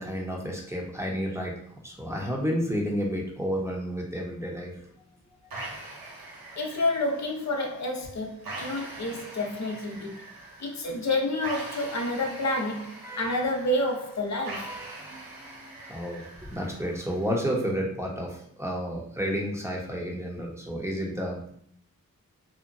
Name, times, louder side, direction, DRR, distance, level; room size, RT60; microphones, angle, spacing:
voice 1, 0.0-1.5 1.8-4.9 13.0-13.4 14.6-21.5, equal, 10° right, 0.8 m, -31 dB
sound 1, 5.5-17.5, right 2 dB, 80° right, 0.7 m, -43 dB
voice 2, 6.6-10.2 10.6-14.7, left 1 dB, 50° left, 0.6 m, -29 dB
2.8 x 2.1 x 2.5 m
cardioid pair, 40°, 34 cm